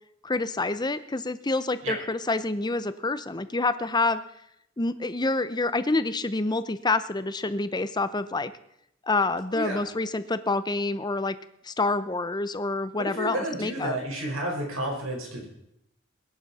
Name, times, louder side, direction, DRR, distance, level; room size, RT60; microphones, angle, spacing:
voice 1, 0.2-4.2 4.8-8.5 9.1-11.4 11.6-14.0, left 3 dB, 20° left, 13 dB, 0.7 m, -27 dB
voice 2, 13.0-15.5, right 1 dB, 80° right, 0 dB, 5.2 m, -31 dB
21.5 x 11.0 x 4.2 m, 0.77 s
head